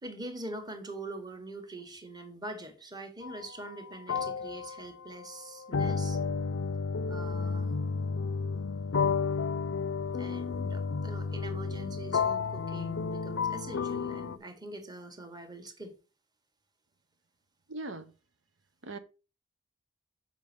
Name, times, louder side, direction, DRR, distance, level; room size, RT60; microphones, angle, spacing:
voice 1, 0.0-6.2 7.1-7.7 10.2-15.9, right 2 dB, 20° right, 1.5 m, -43 dB
sound 1, 3.2-3.4 4.1-14.4, left 5 dB, 85° left, 0.5 m, -32 dB
voice 2, 17.7-18.1 18.8-19.0, right 2 dB, 80° right, 0.9 m, -39 dB
7.4 x 5.3 x 5.0 m
head